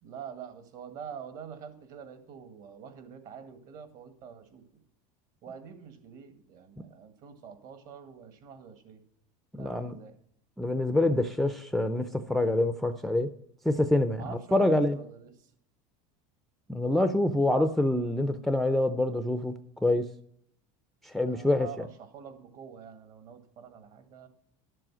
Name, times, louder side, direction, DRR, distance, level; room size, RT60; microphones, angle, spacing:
voice 1, 0.0-4.6 5.4-9.0 9.6-10.2 14.1-15.3 21.2-24.3, right 7 dB, 50° right, 8 dB, 1.9 m, -46 dB
voice 2, 9.5-10.0 10.6-13.3 13.7-15.0 16.7-19.5 19.8-20.1 21.1-21.9, left 1 dB, ahead, 10 dB, 0.5 m, -26 dB
12.0 x 7.6 x 6.2 m, 0.69 s
supercardioid pair, 135°, 18 cm